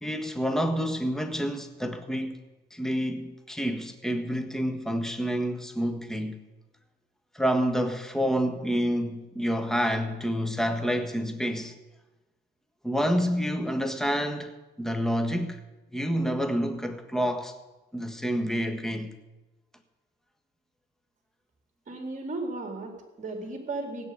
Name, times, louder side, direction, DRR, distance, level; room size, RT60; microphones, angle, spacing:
voice 1, 0.0-2.4 2.7-6.4 7.3-11.7 12.8-14.5 14.8-15.6 15.9-17.5 17.9-19.1, equal, ahead, 1.5 m, -28 dB
voice 2, 21.9-24.1, right 2 dB, 40° right, 4.1 m, -35 dB
16.5 x 8.2 x 9.5 m
cardioid pair, 90°, 20 cm